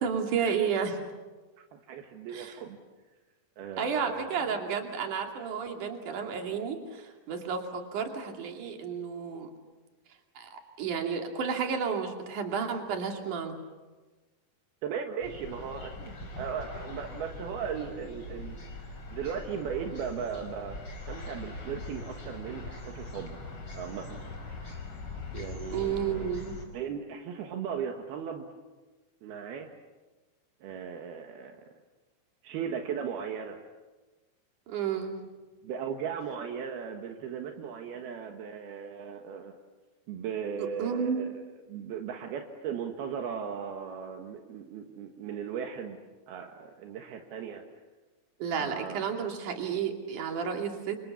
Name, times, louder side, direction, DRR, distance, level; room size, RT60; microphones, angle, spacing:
voice 1, 0.0-1.0 2.3-2.5 3.8-9.5 10.4-13.6 25.7-26.6 34.7-35.2 40.6-41.3 48.4-51.0, right 6 dB, 55° right, 3 dB, 4.0 m, -32 dB
voice 2, 1.6-2.8 3.6-4.5 14.8-18.6 19.1-20.8 21.1-23.4 23.7-24.2 25.3-26.3 26.7-28.5 29.2-29.7 30.6-31.6 32.4-33.6 35.6-39.6 40.1-41.4 41.7-46.0 46.3-47.6 48.6-49.3, right 7 dB, 75° right, 3 dB, 3.4 m, -37 dB
sound 1, 15.2-26.7, left 3 dB, 35° left, 6.4 m, -42 dB
28.5 x 27.0 x 7.2 m, 1.2 s
omnidirectional pair, 4.5 m